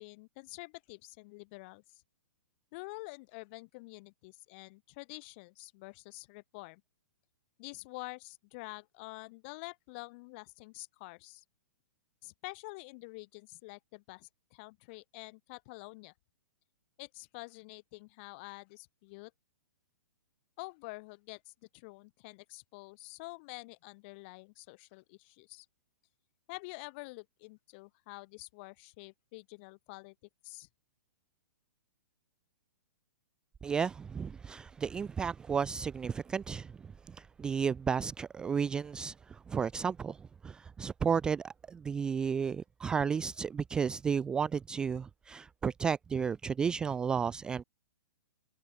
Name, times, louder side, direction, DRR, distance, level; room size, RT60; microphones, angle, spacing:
voice 1, 0.0-2.0 2.7-6.8 7.6-11.4 12.2-16.1 17.0-19.3 20.6-25.7 26.5-30.1 30.4-30.7, left 27 dB, 35° left, 7.4 m, -48 dB
voice 2, 33.6-36.7 37.1-40.2 40.4-47.6, right 6 dB, 10° right, 0.3 m, -33 dB
hypercardioid pair, 155°, 10 cm